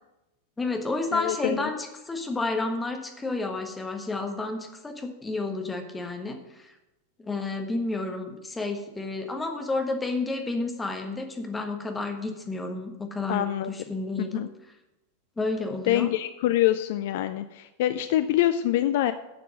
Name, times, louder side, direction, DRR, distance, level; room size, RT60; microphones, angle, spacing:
voice 1, 0.6-6.8 7.2-14.5 15.4-16.1, left 3 dB, 10° left, 4 dB, 1.4 m, -31 dB
voice 2, 1.1-1.7 13.3-13.7 14.2-14.5 15.9-19.1, left 13 dB, 50° left, 12 dB, 0.4 m, -25 dB
10.5 x 6.7 x 6.2 m, 0.99 s
figure-of-eight pair, 90°, 0 cm